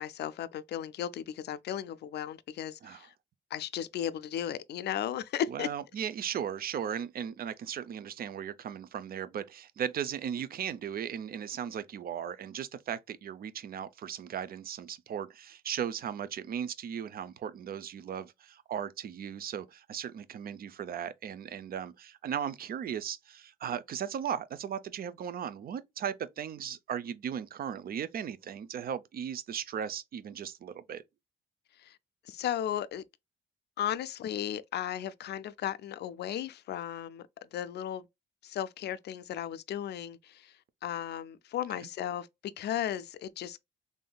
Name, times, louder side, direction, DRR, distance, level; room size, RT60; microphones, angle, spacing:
voice 1, 0.0-3.1 3.5-5.7 31.8-32.0 32.2-33.0 33.8-38.1 38.4-40.6 40.8-43.6, left 10 dB, 60° left, 0.4 m, -35 dB
voice 2, 5.5-31.0, right 8 dB, 50° right, 0.5 m, -37 dB
3.5 x 2.6 x 2.2 m
cardioid pair, 90°, 20 cm